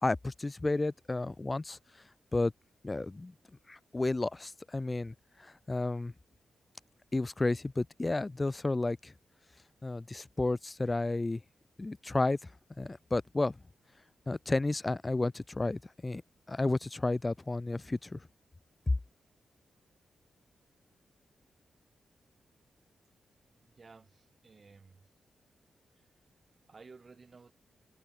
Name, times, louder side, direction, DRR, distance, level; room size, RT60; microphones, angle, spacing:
voice 1, 0.0-1.8 2.3-2.5 2.8-3.3 3.7-6.1 7.1-9.1 9.8-11.4 11.8-12.5 12.8-13.6 14.3-16.2 16.5-18.2, left 2 dB, 20° left, 0.5 m, -32 dB
voice 2, 23.6-25.1 25.9-26.2 26.7-27.5, right 4 dB, 35° right, 6.9 m, -56 dB
wide cardioid pair, 135°, 0 cm